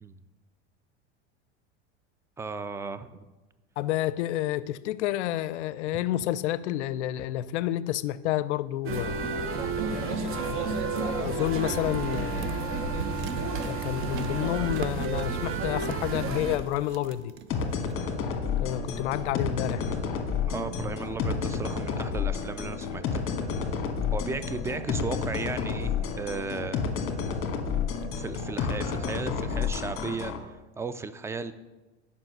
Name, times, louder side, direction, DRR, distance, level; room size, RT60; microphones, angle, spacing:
voice 1, 2.4-3.2 20.5-23.2 24.1-26.8 28.1-31.5, right 4 dB, 10° right, 12 dB, 0.3 m, -35 dB
voice 2, 3.8-9.2 9.7-12.9 13.6-17.3 18.6-20.0, left 13 dB, 85° left, 16 dB, 0.5 m, -30 dB
sound 1, 8.8-16.6, right 3 dB, 40° right, 1.1 m, -31 dB
sound 2, 11.4-18.2, right 8 dB, 75° right, 0.7 m, -41 dB
sound 3, 17.5-30.4, left 6 dB, 40° left, 1.4 m, -30 dB
7.6 x 5.6 x 6.0 m, 1.1 s
hypercardioid pair, 100°, 34 cm